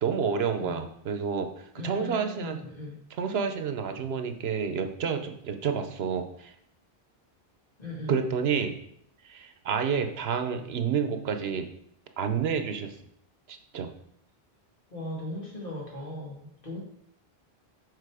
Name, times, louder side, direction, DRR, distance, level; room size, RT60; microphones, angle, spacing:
voice 1, 0.0-2.6 3.2-6.5 8.1-8.7 9.2-11.7 12.2-12.9 13.5-13.9, right 6 dB, 75° right, 7 dB, 1.0 m, -29 dB
voice 2, 0.5-0.9 1.7-3.0 7.8-8.2 14.9-16.8, left 1 dB, 55° left, -4 dB, 2.5 m, -38 dB
6.7 x 4.1 x 4.8 m, 0.70 s
omnidirectional pair, 1.0 m